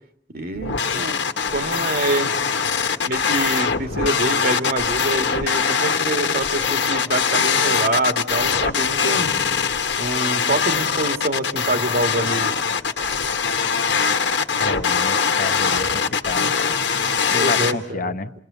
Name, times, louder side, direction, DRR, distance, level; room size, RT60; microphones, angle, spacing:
voice 1, 0.3-1.2 1.5-2.4 3.0-9.3 10.0-12.6 17.3-18.1, right 1 dB, 55° right, 7 dB, 2.0 m, -26 dB
sound 1, 0.6-17.7, left 6 dB, 65° left, 1.7 m, -22 dB
voice 2, 14.6-16.5 17.3-18.3, left 3 dB, 50° left, 8 dB, 1.1 m, -30 dB
29.0 x 22.0 x 6.9 m, 0.66 s
head